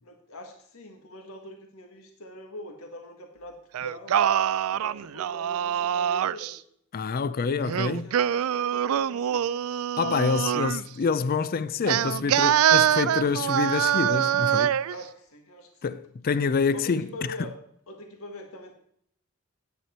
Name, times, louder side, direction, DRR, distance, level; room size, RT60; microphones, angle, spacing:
voice 1, 0.0-4.2 4.7-6.6 7.6-9.9 13.3-13.7 14.9-16.0 16.7-17.5 17.9-18.7, left 1 dB, 75° left, 1.7 m, -44 dB
Singing, 3.7-6.6 7.6-10.8 11.9-15.0, right 10 dB, 75° right, 0.3 m, -24 dB
voice 2, 6.9-8.1 10.0-14.8 15.8-17.1, left 5 dB, 45° left, 0.4 m, -26 dB
9.6 x 9.4 x 4.3 m
head